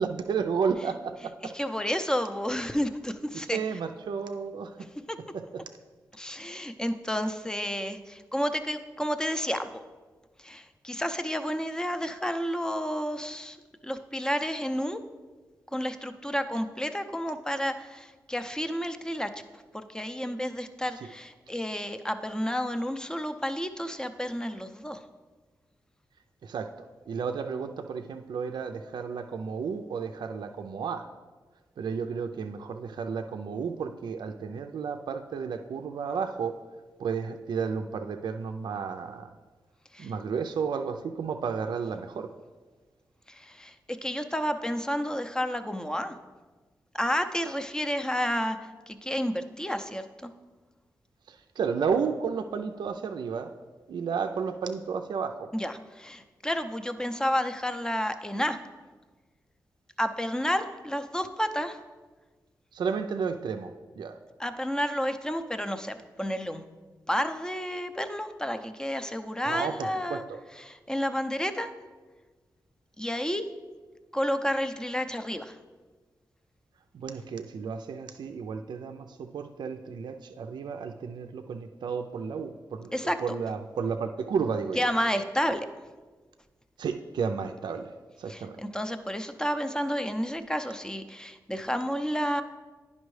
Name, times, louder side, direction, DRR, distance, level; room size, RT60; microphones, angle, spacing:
voice 1, 0.0-1.3 3.5-4.9 5.3-5.4 26.4-26.7 27.1-31.1 31.8-36.5 37.0-39.3 40.0-42.3 51.3-53.5 53.9-55.5 62.7-64.2 69.5-70.4 76.9-82.9 83.2-84.9 86.8-87.9 88.2-88.6, right 6 dB, 70° right, 6 dB, 0.4 m, -32 dB
voice 2, 1.4-3.6 5.1-5.2 6.2-9.8 10.4-13.6 13.8-15.0 15.7-19.3 19.7-25.0 39.9-40.1 43.3-46.1 46.9-50.3 55.5-58.6 60.0-61.8 64.4-66.6 67.1-70.2 70.6-71.7 73.0-73.5 74.1-75.6 82.9-83.4 84.8-85.7 88.3-92.4, equal, 10° left, 8 dB, 0.6 m, -31 dB
10.0 x 5.3 x 3.2 m, 1.3 s
cardioid pair, 45°, 8 cm